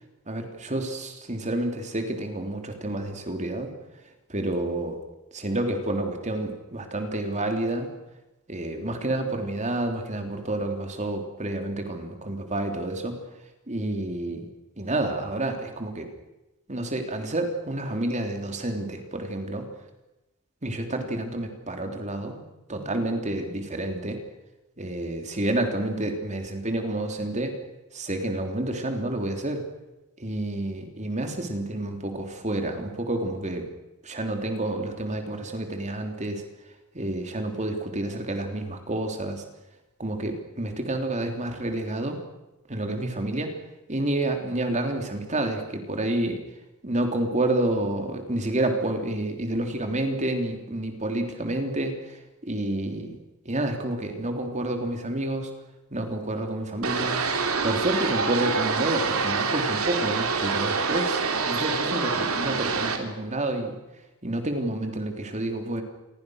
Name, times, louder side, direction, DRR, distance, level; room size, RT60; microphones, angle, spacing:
voice 1, 0.3-3.7 4.3-5.0 5.3-7.9 8.5-13.2 13.7-14.5 14.8-16.1 16.7-19.7 20.6-22.4 22.7-24.2 24.8-27.6 27.9-29.6 30.2-33.7 34.0-36.4 36.9-39.4 40.0-42.2 42.7-43.5 43.9-46.4 46.8-53.2 53.4-55.5 55.9-57.2 57.6-63.8 64.2-65.8, right 1 dB, 35° right, 5 dB, 3.4 m, -29 dB
sound 1, 56.8-63.0, right 4 dB, 75° right, 3.2 m, -26 dB
28.5 x 23.0 x 6.5 m, 1.0 s
head